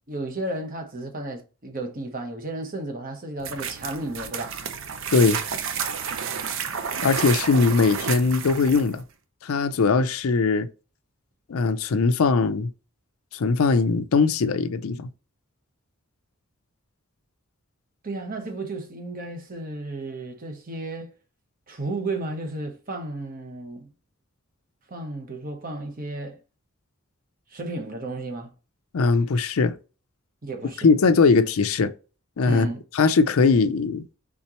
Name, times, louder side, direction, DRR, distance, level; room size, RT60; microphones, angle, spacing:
voice 1, 0.1-4.6 18.0-21.1 21.7-23.9 24.9-26.4 27.5-28.5 30.4-30.9 32.5-32.8, right 2 dB, 40° right, 1.0 m, -33 dB
sound 1, 3.4-9.0, right 7 dB, 65° right, 0.6 m, -31 dB
voice 2, 7.0-9.0 9.4-10.7 11.5-12.7 13.3-15.1 28.9-29.8 30.8-31.9 32.4-32.7 32.9-34.1, left 4 dB, 80° left, 0.5 m, -20 dB
4.3 x 3.7 x 2.9 m
head